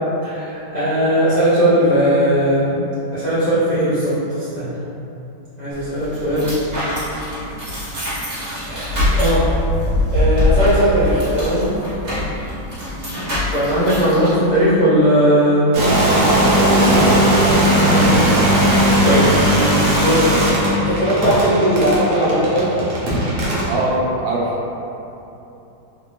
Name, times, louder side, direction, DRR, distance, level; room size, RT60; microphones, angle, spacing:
voice 1, 0.2-2.8 3.1-4.7 5.6-6.5 8.6-9.4 10.1-11.7 13.5-15.7 17.5-18.2 18.6-20.3 20.7-22.8, equal, 60° left, -14 dB, 0.4 m, -18 dB
sound 1, 5.7-14.3, left 1 dB, 25° right, 1.0 m, -22 dB
voice 2, 12.0-12.5 16.0-17.8 18.2-18.4 23.7-24.6, right 2 dB, 80° right, -4 dB, 1.4 m, -23 dB
sound 2, 15.7-23.8, equal, 60° right, 0.8 m, -17 dB
3.5 x 2.6 x 3.0 m, 3.0 s
omnidirectional pair, 2.1 m